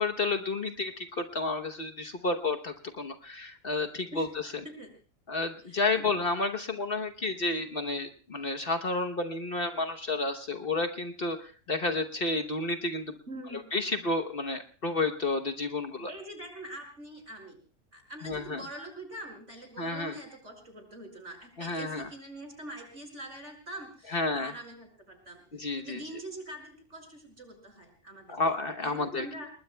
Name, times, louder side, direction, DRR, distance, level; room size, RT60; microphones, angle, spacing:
voice 1, 0.0-4.3 5.3-13.2 13.7-16.1 18.2-18.6 19.8-20.1 21.6-22.1 24.1-24.5 25.5-26.0 28.3-29.3, left 3 dB, 45° left, 7 dB, 1.2 m, -31 dB
voice 2, 5.7-6.0 13.3-13.6 16.0-17.6 17.9-28.4 28.8-29.5, right 1 dB, 60° right, 3 dB, 5.7 m, -44 dB
30.0 x 20.5 x 2.2 m, 0.38 s
omnidirectional pair, 1.4 m